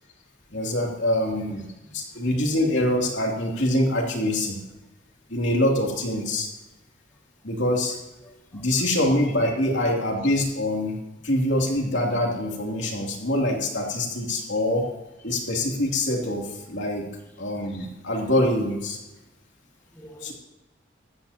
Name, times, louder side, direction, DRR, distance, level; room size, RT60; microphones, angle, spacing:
voice 1, 0.5-1.7 1.9-4.6 5.3-6.5 7.4-8.0 8.5-11.0 11.2-14.9 15.2-17.1 17.4-19.0 20.2-20.3, left 1 dB, 65° left, 0 dB, 3.0 m, -24 dB
voice 2, 1.5-2.2 4.7-4.8 5.3-5.4 6.2-6.4 7.1-7.5 8.2-8.9 14.3-14.5 15.2-15.4 17.2-17.4 19.2-19.3 19.9-20.3, right 1 dB, 10° left, 0 dB, 1.7 m, -52 dB
16.0 x 14.0 x 2.9 m, 1.0 s
head